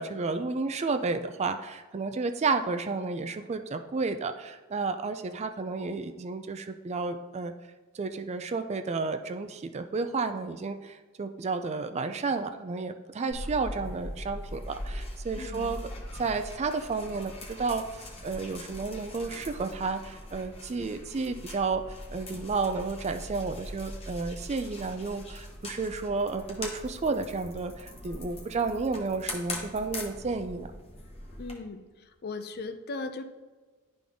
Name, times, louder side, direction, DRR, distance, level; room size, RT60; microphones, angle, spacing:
voice 1, 0.0-7.5 7.9-15.8 16.1-30.7, right 4 dB, 30° right, 8 dB, 0.3 m, -32 dB
sound 1, 13.3-31.5, left 1 dB, 25° left, 1.1 m, -41 dB
voice 2, 15.4-15.8 31.4-31.8 32.2-33.2, left 3 dB, 45° left, 9 dB, 0.5 m, -37 dB
11.0 x 3.8 x 3.5 m, 1.3 s
head